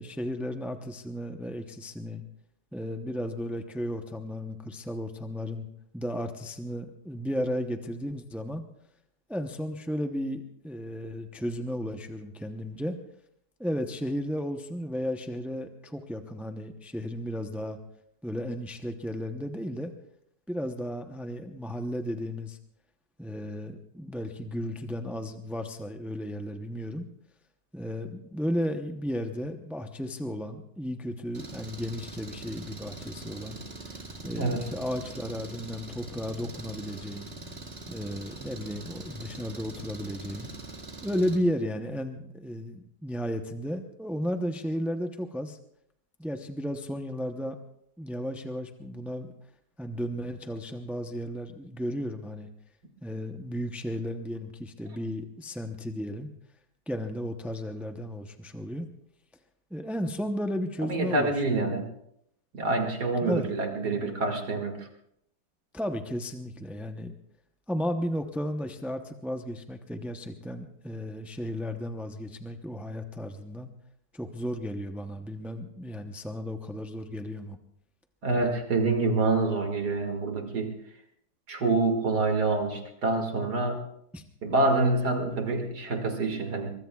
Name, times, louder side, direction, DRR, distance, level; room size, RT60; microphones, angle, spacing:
voice 1, 0.0-2.2 2.7-5.7 5.9-8.6 9.3-13.0 13.6-17.8 18.2-19.9 20.5-22.6 23.2-27.1 27.7-33.6 33.9-34.0 34.2-37.3 37.9-40.5 41.0-45.6 46.2-47.6 48.0-49.3 49.8-52.5 53.0-56.3 56.9-58.9 59.7-61.7 63.2-63.5 65.7-67.1 67.7-73.7 74.1-77.6 84.1-84.2, equal, ahead, 5 dB, 0.3 m, -34 dB
Engine, 31.3-41.4, right 2 dB, 40° right, 2.2 m, -42 dB
voice 2, 60.8-61.9 62.5-64.9 78.2-80.7 81.5-83.8 84.4-86.7, right 3 dB, 75° right, 2 dB, 2.8 m, -26 dB
23.5 x 22.5 x 2.4 m, 0.72 s
omnidirectional pair, 1.8 m